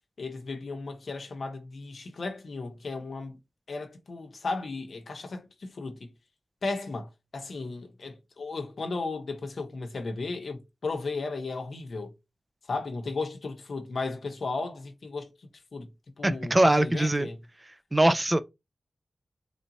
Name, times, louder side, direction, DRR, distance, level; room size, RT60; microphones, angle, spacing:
voice 1, 0.2-3.4 3.7-6.1 6.6-12.1 12.7-15.9 16.2-17.4, left 3 dB, 70° left, 0.7 m, -35 dB
voice 2, 16.2-17.3 17.9-18.4, right 1 dB, 20° right, 0.3 m, -22 dB
3.1 x 2.8 x 2.6 m
cardioid pair, 60°, 0 cm